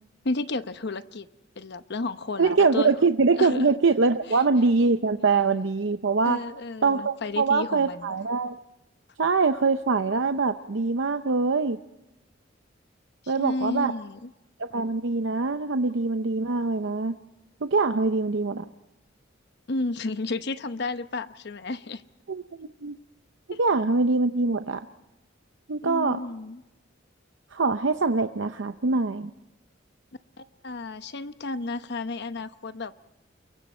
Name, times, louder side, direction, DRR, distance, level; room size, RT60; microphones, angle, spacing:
voice 1, 0.2-1.3 1.6-3.0 3.4-3.7 4.3-4.4 6.2-8.1 13.2-14.3 19.7-22.0 23.5-23.6 25.8-26.6 30.4-32.9, left 3 dB, 60° left, 11 dB, 0.9 m, -32 dB
voice 2, 2.4-6.4 6.8-8.6 9.2-11.8 13.3-13.9 14.6-17.1 17.6-18.7 22.3-22.9 23.6-24.9 25.7-26.2 27.5-29.3, right 4 dB, 70° right, 8 dB, 0.7 m, -23 dB
29.0 x 23.0 x 4.4 m, 0.95 s
head